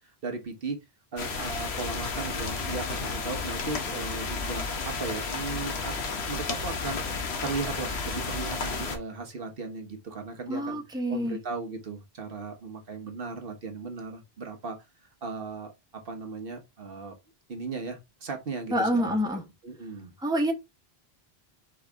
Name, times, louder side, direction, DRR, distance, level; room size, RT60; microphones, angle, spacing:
voice 1, 0.2-0.8 1.1-5.9 6.2-7.0 7.4-10.8 11.1-14.8 15.2-15.7 16.0-17.1 17.5-19.2 19.6-20.1, right 4 dB, 65° right, 1.2 m, -36 dB
sound 1, 1.2-9.0, left 4 dB, 85° left, 1.2 m, -32 dB
voice 2, 10.5-11.4 18.7-19.4 20.2-20.5, equal, 5° right, 1.0 m, -27 dB
4.8 x 3.2 x 3.4 m
omnidirectional pair, 1.0 m